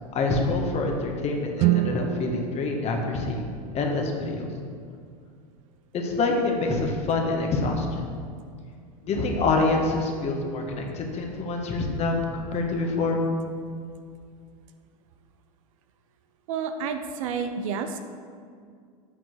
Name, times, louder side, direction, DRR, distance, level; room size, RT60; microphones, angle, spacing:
voice 1, 0.1-3.4 3.7-4.5 5.9-8.0 9.0-13.2, left 3 dB, 35° left, 2 dB, 1.6 m, -26 dB
Guitar, 1.6-4.2, right 12 dB, 35° right, 0.4 m, -28 dB
voice 2, 16.5-18.0, right 6 dB, 60° right, 7 dB, 0.8 m, -30 dB
8.1 x 6.1 x 6.3 m, 2.2 s
figure-of-eight pair, 90°, 20 cm